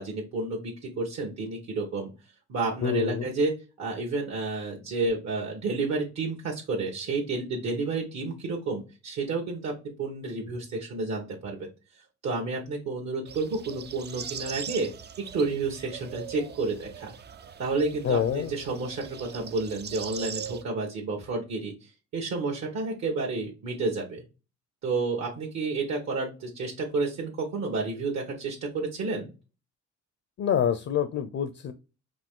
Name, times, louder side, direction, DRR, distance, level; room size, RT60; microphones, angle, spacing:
voice 1, 0.0-2.1 2.5-3.5 3.8-9.7 10.0-11.7 12.2-14.9 15.3-17.1 17.6-24.2 24.8-29.3, right 3 dB, 60° right, 0 dB, 1.5 m, -30 dB
voice 2, 2.8-3.3 18.0-18.5 30.4-31.7, left 8 dB, 50° left, 11 dB, 0.6 m, -26 dB
sound 1, 13.3-20.6, right 8 dB, 35° right, 0.5 m, -41 dB
5.1 x 2.5 x 3.8 m, 0.31 s
cardioid pair, 90°, 30 cm